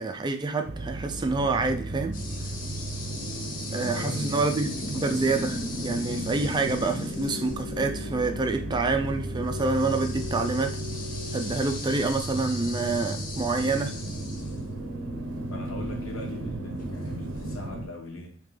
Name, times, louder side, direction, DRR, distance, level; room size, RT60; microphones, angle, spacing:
voice 1, 0.0-2.2 3.7-10.7 11.3-13.9, right 3 dB, 20° right, 0.3 m, -27 dB
sound 1, 0.6-17.9, right 2 dB, 70° right, 0.6 m, -35 dB
sound 2, 2.1-17.7, left 2 dB, 45° left, 0.7 m, -39 dB
sound 3, 3.0-12.0, left 4 dB, 5° right, 1.3 m, -42 dB
voice 2, 3.8-4.2 15.5-18.4, left 2 dB, 80° left, 1.0 m, -40 dB
3.7 x 2.9 x 3.2 m
head